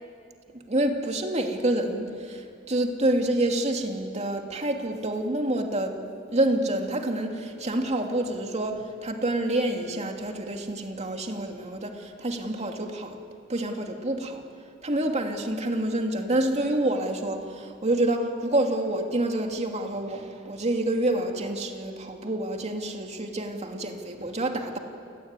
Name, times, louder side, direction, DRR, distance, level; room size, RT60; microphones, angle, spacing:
voice 1, 0.5-6.0 6.3-13.2 13.5-14.4 14.8-24.8, right 1 dB, 35° right, 3 dB, 2.7 m, -27 dB
29.0 x 19.0 x 9.7 m, 2.3 s
head